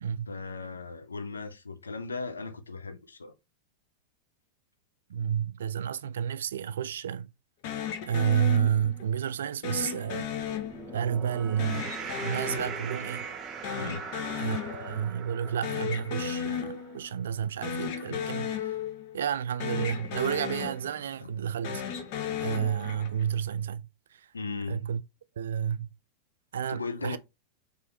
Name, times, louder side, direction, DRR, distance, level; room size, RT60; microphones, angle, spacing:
voice 1, 0.3-3.3 11.1-11.2 13.8-14.1 18.1-18.2 21.2-21.3 24.3-24.8 26.7-27.2, left 4 dB, 75° left, 0.6 m, -37 dB
voice 2, 5.1-7.3 8.0-10.3 10.9-13.3 14.4-18.8 19.1-21.8 22.4-24.3 24.7-25.0 25.4-25.9 26.5-27.2, right 8 dB, 65° right, 0.3 m, -31 dB
sound 1, 7.6-9.2 9.6-11.2 11.6-13.4 13.6-15.2 15.4-17.2 17.6-19.3 19.6-21.2 21.6-23.3, left 7 dB, 45° left, 0.9 m, -35 dB
sound 2, 10.4-16.9, right 6 dB, 25° right, 0.8 m, -41 dB
4.8 x 3.2 x 3.0 m
figure-of-eight pair, 90°, 0 cm